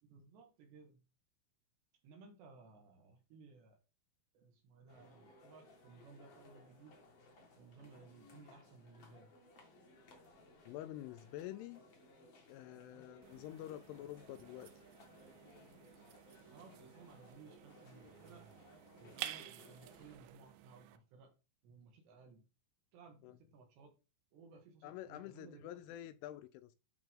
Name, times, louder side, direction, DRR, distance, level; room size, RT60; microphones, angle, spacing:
voice 1, 0.0-1.0 2.0-3.8 4.3-7.0 7.6-9.4 12.7-13.0 16.3-18.5 19.0-21.3 21.6-22.5 22.9-24.0 24.3-25.8, right 4 dB, 65° right, 3.5 m, -59 dB
sound 1, 4.9-20.2, left 2 dB, 65° left, 1.4 m, -62 dB
voice 2, 10.7-11.8 12.5-14.7 23.2-23.3 24.8-26.8, left 13 dB, 85° left, 3.0 m, -48 dB
sound 2, 13.2-21.0, right 13 dB, 80° right, 2.7 m, -52 dB
11.0 x 4.6 x 3.7 m
omnidirectional pair, 5.7 m